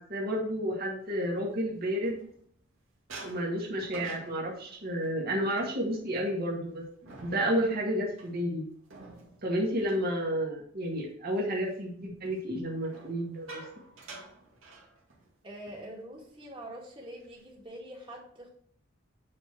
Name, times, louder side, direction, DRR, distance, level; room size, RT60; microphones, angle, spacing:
voice 1, 0.0-2.2 3.2-6.8 7.2-8.6 9.4-13.6, equal, 50° right, -3 dB, 2.1 m, -31 dB
sound 1, 1.2-2.7 3.1-10.9 11.3-11.6 12.8-15.4 15.7-15.9 16.2-16.5 17.0-17.6, right 2 dB, 80° right, 2.3 m, -50 dB
voice 2, 15.4-18.5, right 1 dB, 25° right, -1 dB, 2.2 m, -44 dB
8.8 x 4.7 x 4.5 m, 0.63 s
head